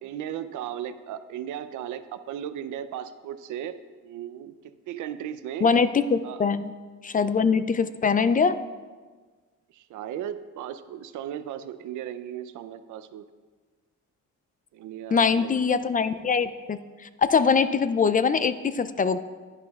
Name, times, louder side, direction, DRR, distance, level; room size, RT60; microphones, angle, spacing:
voice 1, 0.0-5.7 6.2-6.4 9.7-13.3 14.7-15.8, right 10 dB, 80° right, 12 dB, 0.6 m, -36 dB
voice 2, 5.6-6.7 7.0-8.6 15.1-16.8 17.2-19.2, left 5 dB, 30° left, 13 dB, 0.4 m, -22 dB
11.0 x 10.0 x 2.4 m, 1.4 s
cardioid pair, 90°, 30 cm